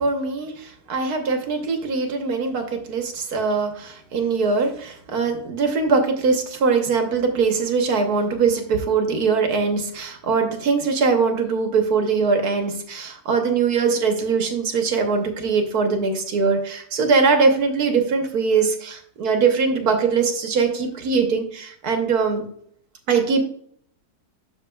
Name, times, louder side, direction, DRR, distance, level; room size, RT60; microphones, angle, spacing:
voice 1, 0.0-22.4 23.1-23.5, right 4 dB, 70° right, 4 dB, 1.5 m, -21 dB
10.0 x 6.7 x 2.3 m, 0.62 s
omnidirectional pair, 1.7 m